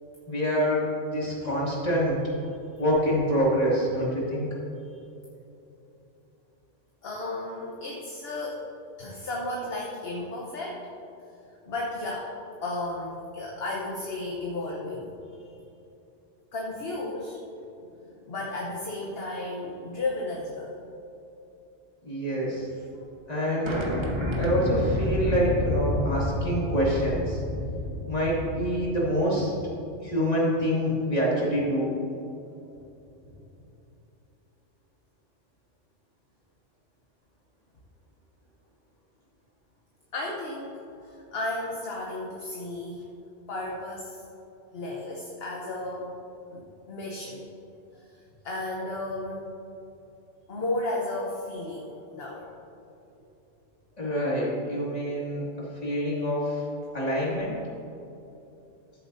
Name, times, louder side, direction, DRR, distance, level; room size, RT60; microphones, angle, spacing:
voice 1, 0.3-2.2 2.8-4.5 22.0-22.7 23.3-23.9 24.4-27.4 28.1-29.5 30.0-31.9 54.0-55.5 55.8-56.6 56.9-57.6, equal, 35° left, -6 dB, 2.4 m, -26 dB
voice 2, 7.0-8.7 9.0-10.8 11.7-12.3 12.6-15.6 16.5-17.4 18.3-20.8 40.1-43.1 43.5-44.2 44.7-46.1 46.5-47.4 47.9-49.5 50.5-52.5, left 2 dB, 55° left, -2 dB, 1.2 m, -34 dB
sound 1, 23.6-29.0, left 1 dB, 25° right, 1.2 m, -29 dB
13.5 x 7.5 x 2.7 m, 2.8 s
omnidirectional pair, 1.3 m